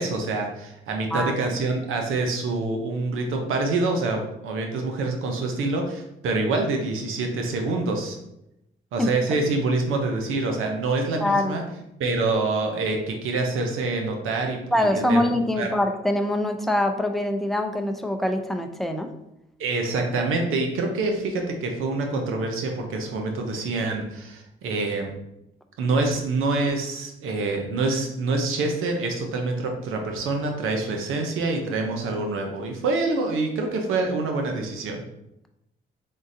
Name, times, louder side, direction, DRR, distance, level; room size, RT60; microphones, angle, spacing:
voice 1, 0.0-8.2 8.9-11.6 12.0-15.2 15.6-15.7 19.6-25.1 25.8-35.0, right 3 dB, 80° right, 3 dB, 0.7 m, -26 dB
voice 2, 1.1-1.5 9.0-9.1 11.2-11.6 14.7-19.1, left 1 dB, ahead, 5 dB, 0.5 m, -24 dB
3.7 x 3.6 x 2.7 m, 0.85 s
supercardioid pair, 55°, 21 cm